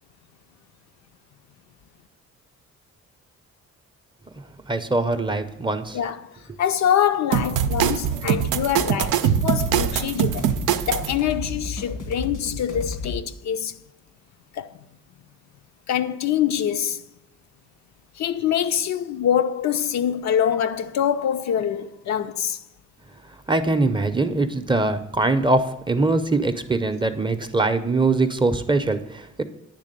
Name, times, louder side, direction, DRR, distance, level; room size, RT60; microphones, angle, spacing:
voice 1, 4.7-6.0 23.5-29.4, right 2 dB, 15° right, 0.6 m, -22 dB
voice 2, 5.9-6.3 6.6-10.5 10.9-13.7 14.5-14.8 15.9-17.0 18.2-22.6, left 9 dB, 65° left, 0.6 m, -24 dB
sound 1, 7.3-11.1, right 9 dB, 85° right, 0.5 m, -22 dB
sound 2, 7.6-13.2, left 2 dB, 90° left, 1.8 m, -35 dB
9.8 x 3.4 x 6.6 m
cardioid pair, 90°, 30 cm